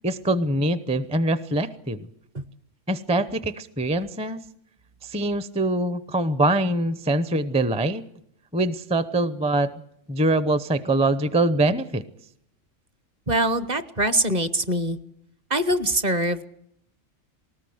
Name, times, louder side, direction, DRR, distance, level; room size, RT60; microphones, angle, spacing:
voice 1, 0.0-2.0 2.9-4.4 5.0-8.0 8.5-9.7 10.1-12.0, right 1 dB, 5° right, 14 dB, 0.5 m, -23 dB
voice 2, 13.3-15.0 15.5-16.5, right 1 dB, 35° right, 13 dB, 1.0 m, -23 dB
20.0 x 19.0 x 7.9 m, 0.72 s
omnidirectional pair, 1.3 m